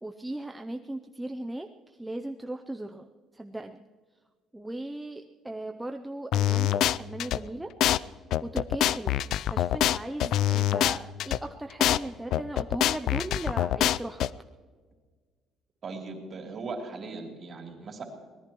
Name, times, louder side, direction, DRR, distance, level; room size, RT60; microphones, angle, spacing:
voice 1, 0.0-3.1 3.3-3.8 4.5-7.7 8.4-9.2 9.5-14.3, right 1 dB, 5° right, 4 dB, 0.5 m, -37 dB
sound 1, 6.3-7.4 7.8-8.0 8.3-11.4 11.8-12.0 12.3-14.3, left 12 dB, 60° left, 0.4 m, -25 dB
voice 2, 15.8-18.1, right 3 dB, 35° right, 1 dB, 3.2 m, -38 dB
24.5 x 18.5 x 3.0 m, 1.5 s
cardioid pair, 165°, 0 cm